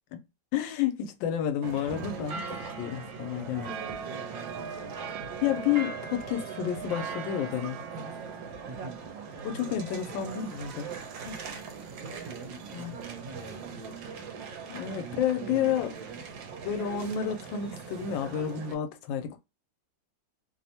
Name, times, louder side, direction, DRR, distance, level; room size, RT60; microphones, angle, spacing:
voice 1, 0.5-3.7 5.4-7.8 9.4-10.9 11.2-11.4 12.7-13.0 14.7-15.9 16.6-19.4, left 9 dB, 90° left, 1.3 m, -30 dB
sound 1, 1.6-18.8, right 5 dB, 85° right, 1.3 m, -40 dB
voice 2, 3.3-5.2 8.7-9.1 10.1-10.3 11.9-16.3, right 3 dB, 60° right, 1.2 m, -46 dB
3.2 x 2.0 x 2.7 m
omnidirectional pair, 2.0 m